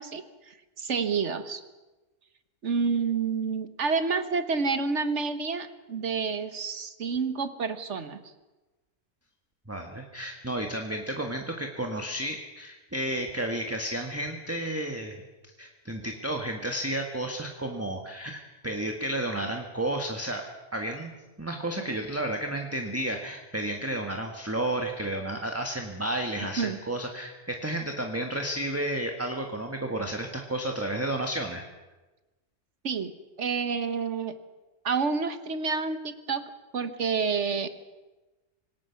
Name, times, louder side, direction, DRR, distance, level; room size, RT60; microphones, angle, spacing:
voice 1, 0.0-1.6 2.6-8.2 26.6-26.8 32.8-33.1 33.4-34.4 34.8-36.4 36.7-37.7, right 5 dB, 65° right, 10 dB, 1.6 m, -29 dB
voice 2, 9.7-20.5 20.7-21.1 21.4-31.6, right 1 dB, 10° right, 3 dB, 1.6 m, -32 dB
26.0 x 19.0 x 5.9 m, 1.1 s
omnidirectional pair, 1.3 m